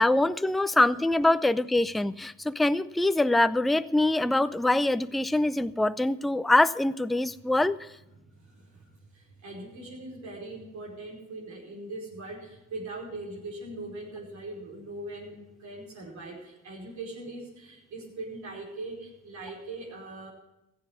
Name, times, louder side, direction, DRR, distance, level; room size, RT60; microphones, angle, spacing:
voice 1, 0.0-7.8, left 2 dB, ahead, 13 dB, 0.5 m, -24 dB
voice 2, 8.1-20.3, right 2 dB, 70° right, -3 dB, 5.1 m, -41 dB
15.0 x 8.2 x 7.2 m, 0.89 s
cardioid pair, 90°, 30 cm